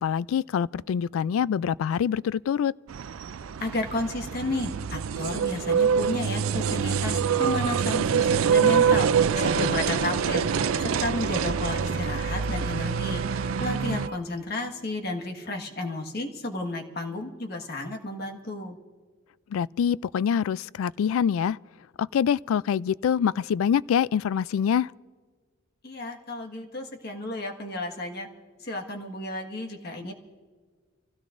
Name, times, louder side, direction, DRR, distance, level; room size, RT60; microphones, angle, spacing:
voice 1, 0.0-2.7 19.5-21.6 22.0-24.9, left 8 dB, 90° left, 0.3 m, -25 dB
sound 1, 2.9-14.1, right 7 dB, 90° right, 0.4 m, -25 dB
voice 2, 3.6-9.1 9.3-13.2 13.6-18.8 25.8-28.3 28.6-30.1, left 2 dB, 50° left, 1.6 m, -32 dB
sound 2, 9.3-14.2, right 1 dB, 50° right, 0.9 m, -37 dB
26.5 x 16.0 x 2.5 m
head